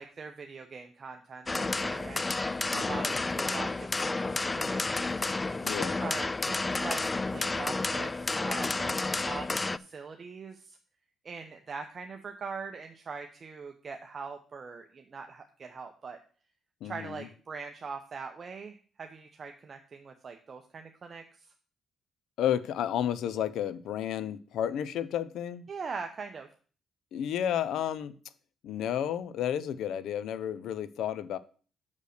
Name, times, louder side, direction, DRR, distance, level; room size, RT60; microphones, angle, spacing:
voice 1, 0.0-2.4 2.7-4.3 4.6-5.2 6.0-10.8 11.2-16.2 16.8-21.2 25.7-26.5, right 5 dB, 45° right, 5 dB, 0.8 m, -42 dB
sound 1, 1.5-9.8, left 3 dB, 20° left, 0.3 m, -31 dB
voice 2, 2.7-3.2 5.6-6.1 16.8-17.3 22.4-25.7 27.1-28.2 28.6-31.4, left 10 dB, 80° left, 16 dB, 0.6 m, -32 dB
6.4 x 5.3 x 6.6 m, 0.41 s
cardioid pair, 90°, 0 cm